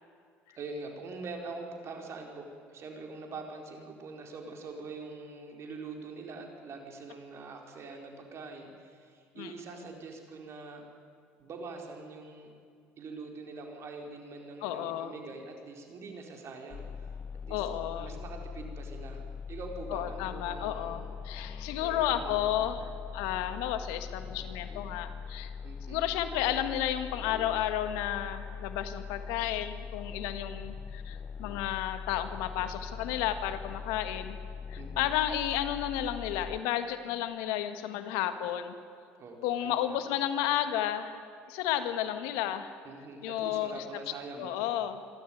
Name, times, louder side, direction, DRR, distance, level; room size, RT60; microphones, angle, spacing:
voice 1, 0.6-10.9 11.4-12.5 13.0-17.1 17.4-17.7 18.0-19.2 19.5-21.1 21.7-22.5 25.6-26.0 34.8-35.1 39.2-40.0 42.8-44.6, right 3 dB, 50° right, 2 dB, 4.5 m, -44 dB
voice 2, 9.4-9.8 14.6-15.1 17.5-18.1 19.9-22.8 23.1-25.5 25.9-34.4 34.7-38.7 39.4-41.2 41.5-42.7 43.2-43.8 44.4-45.0, left 11 dB, 80° left, 10 dB, 1.5 m, -32 dB
sound 1, 16.7-36.6, left 6 dB, 35° left, 0.6 m, -42 dB
25.5 x 13.0 x 9.4 m, 2.3 s
hypercardioid pair, 70°, 6 cm